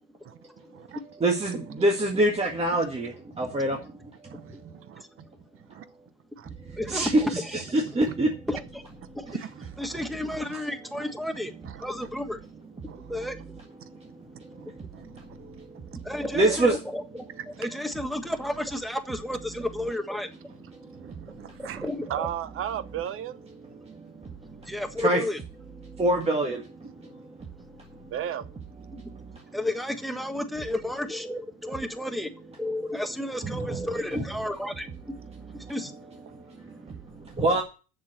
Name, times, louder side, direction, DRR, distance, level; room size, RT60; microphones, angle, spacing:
voice 1, 1.2-4.6 6.6-7.4 7.7-8.3 13.8-16.0 16.3-16.8 20.8-21.6 23.7-24.7 25.0-25.2 25.8-27.3 27.9-28.1 28.9-29.4 33.4-33.8 34.1-34.2 35.6-35.7 36.3-37.6, right 1 dB, 20° right, 1.9 m, -28 dB
voice 2, 6.8-7.6 8.5-8.8 9.1-9.4 9.8-12.4 12.8-13.6 16.0-17.0 17.6-20.5 21.2-22.3 24.6-25.4 27.5-27.8 29.5-36.3 36.7-36.9 37.3-37.4, left 1 dB, ahead, 1.5 m, -32 dB
voice 3, 14.5-15.6 16.0-16.1 20.9-23.4 28.1-28.5, right 10 dB, 45° right, 1.0 m, -36 dB
7.2 x 6.9 x 8.0 m
supercardioid pair, 95°, 31 cm